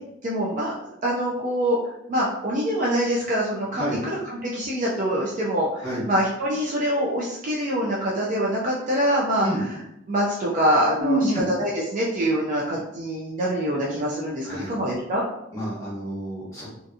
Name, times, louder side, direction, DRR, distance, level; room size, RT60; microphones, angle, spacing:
voice 1, 0.2-0.7 1.0-1.8 2.1-9.7 10.1-15.2, equal, 45° right, -4 dB, 0.5 m, -25 dB
voice 2, 11.0-11.4 14.4-14.7 15.5-16.7, right 1 dB, 15° left, -7 dB, 0.9 m, -27 dB
2.7 x 2.5 x 2.4 m, 0.82 s
head